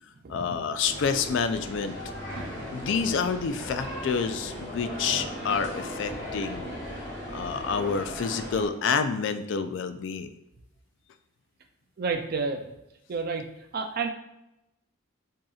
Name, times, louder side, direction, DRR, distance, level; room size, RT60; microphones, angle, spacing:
voice 1, 0.3-2.0 2.7-6.7 7.3-10.3, left 5 dB, 60° left, 10 dB, 0.3 m, -28 dB
sound 1, 0.8-8.7, equal, 15° left, 1.4 m, -37 dB
voice 2, 12.0-12.7 13.1-13.5 13.7-14.1, right 4 dB, 45° right, 4 dB, 0.4 m, -29 dB
7.5 x 2.8 x 2.3 m, 0.89 s
head